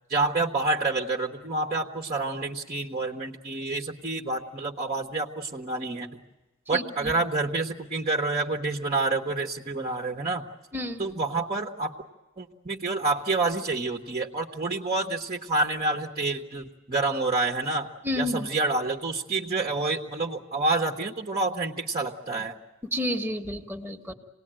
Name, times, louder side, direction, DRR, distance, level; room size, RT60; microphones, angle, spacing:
voice 1, 0.1-6.2 6.7-10.4 11.0-11.9 12.4-17.9 18.2-22.5, right 3 dB, 35° right, 1 dB, 1.2 m, -28 dB
voice 2, 6.7-7.1 10.7-11.1 18.0-18.5 22.8-24.1, left 1 dB, 10° right, 3 dB, 1.5 m, -30 dB
27.0 x 19.0 x 8.9 m, 1.1 s
head